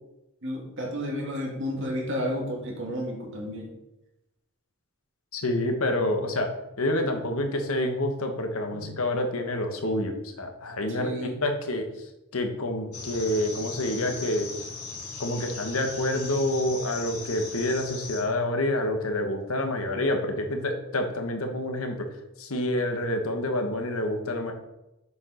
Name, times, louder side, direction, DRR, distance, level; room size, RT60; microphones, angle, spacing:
voice 1, 0.4-3.7 8.7-8.9 11.0-11.4, equal, 55° right, -1 dB, 2.1 m, -32 dB
voice 2, 5.3-6.5 6.8-14.5 15.2-22.1 22.4-24.5, left 1 dB, 70° left, 4 dB, 1.1 m, -28 dB
sound 1, 12.9-18.2, left 4 dB, 85° left, 1.8 m, -38 dB
7.1 x 4.8 x 4.9 m, 0.93 s
head